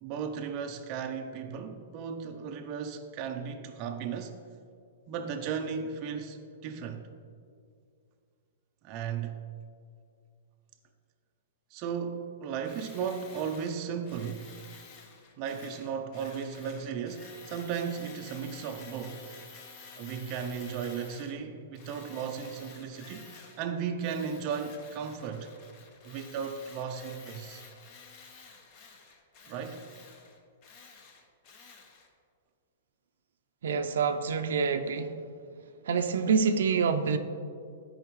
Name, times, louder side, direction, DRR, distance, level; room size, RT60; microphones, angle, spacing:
voice 1, 0.0-4.4 5.1-7.1 8.8-9.4 11.7-14.5 15.4-19.3 20.0-25.5 26.0-27.6 29.5-29.8, right 7 dB, 30° right, 4 dB, 0.5 m, -35 dB
Tools, 12.6-21.4 21.8-23.7 24.0-32.1, left 5 dB, 30° left, 0.8 m, -51 dB
voice 2, 33.6-35.2 35.9-37.2, right 5 dB, 75° right, 8 dB, 0.5 m, -26 dB
12.5 x 5.0 x 3.1 m, 2.3 s
hypercardioid pair, 170°, 0 cm